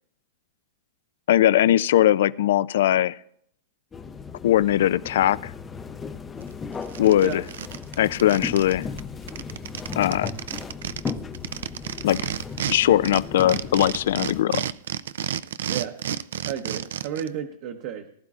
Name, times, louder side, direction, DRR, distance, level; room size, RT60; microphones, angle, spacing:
voice 1, 1.3-3.2 4.4-5.5 7.0-7.4 8.0-8.9 10.0-10.3 12.0-12.2 12.7-14.7, left 12 dB, 70° left, 18 dB, 0.3 m, -20 dB
sound 1, 3.9-14.4, left 5 dB, 15° left, 0.5 m, -36 dB
sound 2, 6.4-6.5 6.8-8.7 9.0-9.1 9.3-12.8 13.0-17.3, right 9 dB, 80° right, 0.4 m, -31 dB
voice 2, 16.4-18.1, right 9 dB, 50° right, 4 dB, 0.9 m, -32 dB
19.0 x 11.0 x 2.4 m, 0.68 s
hypercardioid pair, 145°, 0 cm